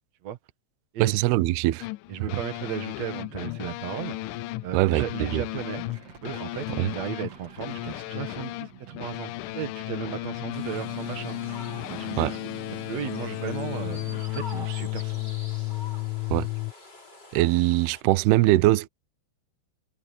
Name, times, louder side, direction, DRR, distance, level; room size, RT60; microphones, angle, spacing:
voice 1, 1.0-1.9 4.7-5.1 5.3-5.4 6.7-6.9 12.2-12.3 16.3-16.5 17.3-18.9, right 17 dB, 85° right, 2.2 m, -22 dB
sound 1, 1.8-16.7, left 20 dB, 85° left, 3.2 m, -34 dB
voice 2, 2.1-4.2 4.6-5.9 6.2-11.4 11.9-14.0 14.3-15.2, right 9 dB, 65° right, 1.7 m, -35 dB
airplane bermuda triangle, 3.1-14.3, right 9 dB, 45° right, 2.2 m, -47 dB
sound 2, 10.5-18.0, left 1 dB, 20° left, 7.0 m, -46 dB
omnidirectional pair, 5.5 m